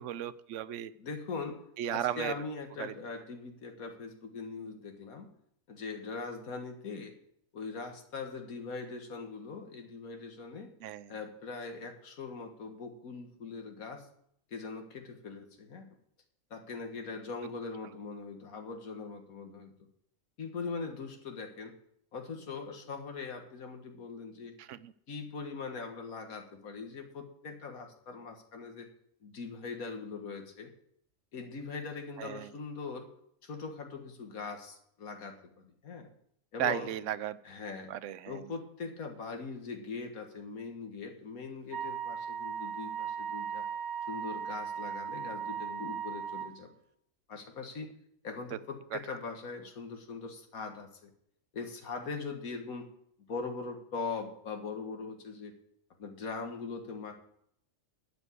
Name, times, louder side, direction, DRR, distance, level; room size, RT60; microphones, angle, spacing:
voice 1, 0.0-0.9 1.8-2.3 2.8-2.9 10.8-11.1 17.8-17.9 24.6-24.9 32.2-32.5 36.6-37.4 37.9-38.4 48.5-48.6 48.9-49.0, right 11 dB, 70° right, 15 dB, 0.8 m, -35 dB
voice 2, 1.0-1.6 1.9-5.3 5.7-7.1 7.5-10.7 11.1-14.1 14.5-15.9 16.5-19.7 20.4-21.7 22.1-24.6 25.1-28.9 29.2-30.7 31.3-33.1 33.4-36.1 36.5-36.9 37.4-37.9 38.3-43.6 44.1-46.7 47.3-47.9 48.2-51.1 51.5-52.9 53.3-55.5 56.0-57.1, left 4 dB, 85° left, 4 dB, 1.9 m, -41 dB
Wind instrument woodwind instrument, 41.7-46.5, right 7 dB, 90° right, 1.2 m, -37 dB
11.5 x 4.8 x 8.3 m, 0.70 s
omnidirectional pair, 1.4 m